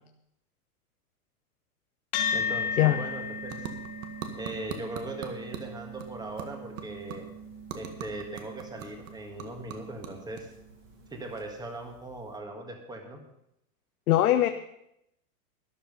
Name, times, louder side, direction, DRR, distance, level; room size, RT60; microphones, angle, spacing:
sound 1, 2.1-10.8, left 4 dB, 60° left, 2.8 m, -37 dB
voice 1, 2.3-3.6 4.4-7.3 7.7-10.5 11.1-13.2, right 2 dB, 10° right, 3 dB, 1.8 m, -39 dB
sound 2, 2.5-12.0, right 7 dB, 60° right, 1.9 m, -45 dB
voice 2, 14.1-14.5, left 13 dB, 80° left, 8 dB, 0.9 m, -21 dB
13.0 x 10.5 x 5.4 m, 0.79 s
supercardioid pair, 150°, 43 cm